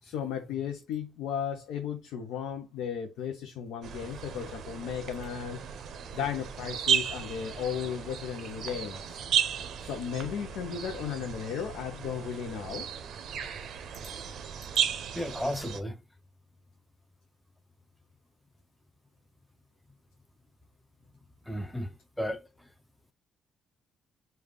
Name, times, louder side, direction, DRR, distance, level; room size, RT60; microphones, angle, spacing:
voice 1, 0.0-5.6 6.1-9.2 9.8-12.9, left 8 dB, 90° left, 0.5 m, -35 dB
sound 1, 3.8-15.8, right 7 dB, 70° right, 0.5 m, -34 dB
voice 2, 15.1-16.0 21.5-21.9 22.2-22.4, equal, 5° left, 0.4 m, -33 dB
3.3 x 2.2 x 3.6 m
cardioid pair, 90°, 0 cm